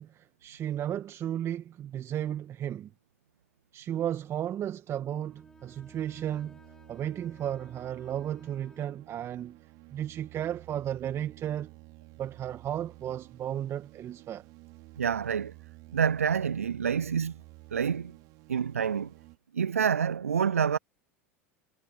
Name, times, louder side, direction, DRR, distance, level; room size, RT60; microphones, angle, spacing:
voice 1, 0.0-2.9 3.7-6.6 6.9-9.6 9.9-11.7 12.2-14.4, right 10 dB, 35° right, 2.0 m, -34 dB
sound 1, 4.2-19.4, right 24 dB, 55° right, 5.0 m, -53 dB
Bowed string instrument, 5.3-9.1, left 2 dB, 10° left, 3.4 m, -57 dB
voice 2, 15.0-15.5 15.9-17.3 17.7-18.1 18.5-19.1 19.5-20.8, right 7 dB, 85° right, 0.5 m, -27 dB
hypercardioid pair, 85°, 8 cm